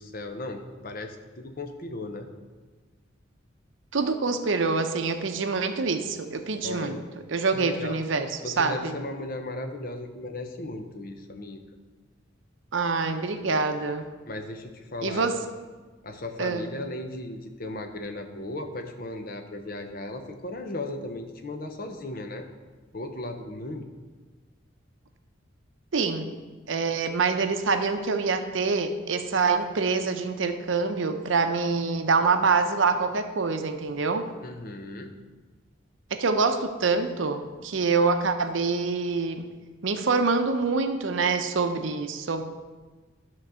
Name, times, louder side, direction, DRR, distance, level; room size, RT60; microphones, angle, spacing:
voice 1, 0.0-2.3 6.6-7.0 7.5-8.0 8.4-11.6 14.3-15.3 16.0-22.5 22.9-23.9 34.4-35.2, left 2 dB, 45° left, 5 dB, 0.8 m, -36 dB
voice 2, 3.9-7.0 7.3-9.0 12.7-14.1 15.0-15.4 16.4-16.7 25.9-26.3 26.7-34.3 36.1-39.4 39.8-42.4, right 4 dB, 70° right, 8 dB, 0.7 m, -25 dB
11.0 x 3.9 x 6.2 m, 1.4 s
head